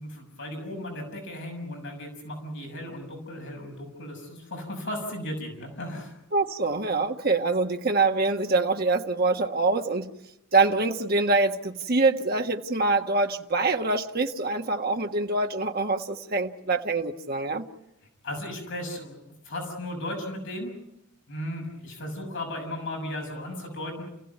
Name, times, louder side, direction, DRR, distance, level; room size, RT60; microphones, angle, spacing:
voice 1, 0.0-6.2 18.2-19.2 19.4-20.7 21.3-24.0, left 1 dB, 55° left, 1 dB, 6.5 m, -35 dB
voice 2, 6.3-10.1 10.5-17.7, right 3 dB, 45° right, 3 dB, 1.5 m, -25 dB
29.5 x 16.0 x 9.4 m, 0.84 s
head